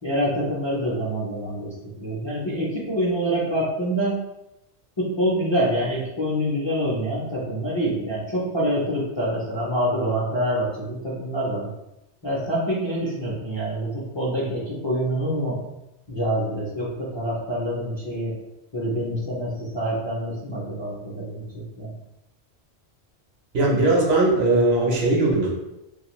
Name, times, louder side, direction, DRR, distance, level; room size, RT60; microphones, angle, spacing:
voice 1, 0.0-4.2 5.0-11.7 12.2-15.7 16.1-18.3 18.7-21.9, equal, 35° left, -7 dB, 0.5 m, -26 dB
voice 2, 23.5-25.5, right 2 dB, 65° right, -2 dB, 1.0 m, -19 dB
2.6 x 2.3 x 3.0 m, 0.91 s
omnidirectional pair, 1.1 m